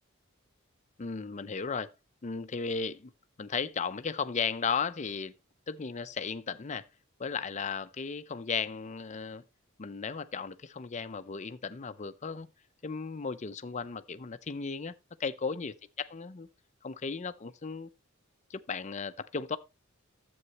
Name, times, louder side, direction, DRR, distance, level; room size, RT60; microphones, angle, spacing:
voice 1, 1.0-1.9 2.2-3.1 3.4-5.3 5.7-6.9 7.2-9.4 9.8-12.5 12.8-14.9 15.2-16.5 16.8-17.9 18.5-19.6, left 5 dB, 35° left, 0.5 m, -35 dB
11.0 x 7.9 x 2.9 m
head